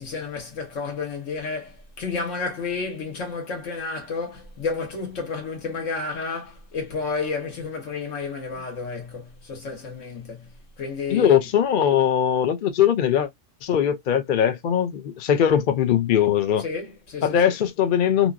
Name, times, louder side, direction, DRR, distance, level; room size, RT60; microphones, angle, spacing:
voice 1, 0.0-11.5 16.6-17.6, left 4 dB, 85° left, 1.6 m, -31 dB
voice 2, 11.1-13.3 13.6-16.6 17.2-18.3, left 9 dB, 55° left, 0.6 m, -20 dB
2.8 x 2.6 x 2.3 m
omnidirectional pair, 1.3 m